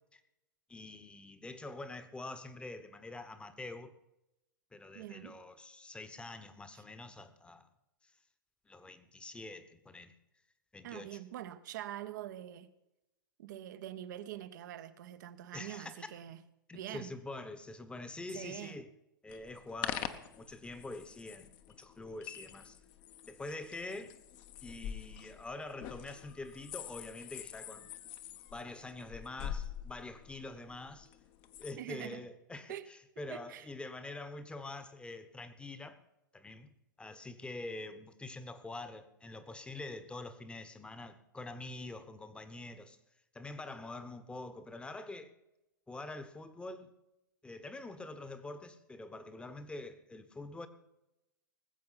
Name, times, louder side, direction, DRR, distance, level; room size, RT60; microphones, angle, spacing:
voice 1, 0.7-3.9 4.7-7.6 8.6-10.1 10.7-11.2 15.5-16.1 16.7-18.9 19.2-22.8 23.3-24.1 24.6-27.9 28.5-31.1 31.6-36.0 36.3-43.0 43.3-45.3 45.9-46.9 47.4-50.7, left 2 dB, 10° left, 1.1 m, -45 dB
voice 2, 4.9-5.4 6.7-6.8 10.8-12.7 13.4-16.4 16.7-17.1 18.3-18.8 31.8-32.3 32.7-32.9 33.3-33.7, right 12 dB, 60° right, 1.0 m, -44 dB
sound 1, 19.3-31.7, left 10 dB, 40° left, 1.0 m, -45 dB
19.5 x 7.7 x 5.8 m
hypercardioid pair, 110°, 11 cm